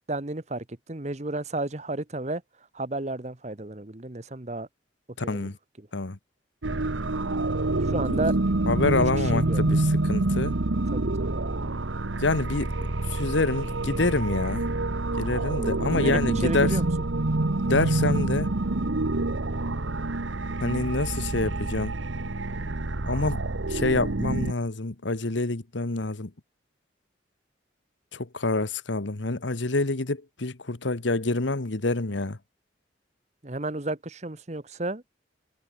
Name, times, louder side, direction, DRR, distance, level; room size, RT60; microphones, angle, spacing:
voice 1, 0.1-2.4 2.7-4.7 5.2-5.5 5.8-5.9 7.9-8.3 8.9-9.0 9.3-9.7 10.9-11.4 15.9-16.9 33.4-35.0, right 2 dB, 35° right, 1.1 m, -32 dB
voice 2, 5.2-5.6 5.9-6.2 7.9-8.2 8.7-10.5 12.2-12.7 13.1-14.7 15.2-16.8 17.6-18.5 20.6-22.0 23.1-23.4 23.7-26.3 28.1-32.4, left 2 dB, 75° left, 1.3 m, -27 dB
sound 1, 6.6-24.5, right 2 dB, 85° right, 1.2 m, -27 dB
head